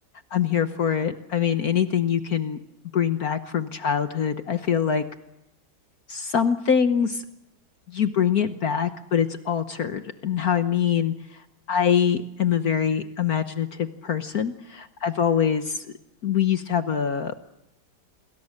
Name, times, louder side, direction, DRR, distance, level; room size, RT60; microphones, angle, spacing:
voice 1, 0.3-2.6 2.9-5.0 6.1-7.2 7.9-11.4 11.7-15.9 16.2-17.4, left 8 dB, 55° left, 10 dB, 1.3 m, -24 dB
28.5 x 21.5 x 6.6 m, 0.87 s
omnidirectional pair, 2.3 m